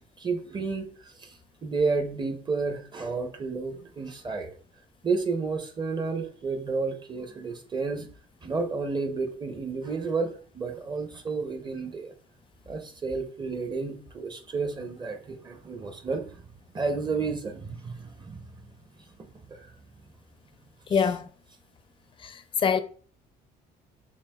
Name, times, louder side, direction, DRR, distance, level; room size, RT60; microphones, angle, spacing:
voice 1, 0.2-1.4 1.6-4.5 5.0-8.1 8.4-12.1 12.7-16.2 16.7-18.4 19.2-19.7 20.9-21.1, right 4 dB, 25° right, 0.6 m, -31 dB
voice 2, 20.9-21.3 22.2-22.8, left 6 dB, 30° left, 0.4 m, -25 dB
7.0 x 2.4 x 2.2 m
cardioid pair, 110°, 17 cm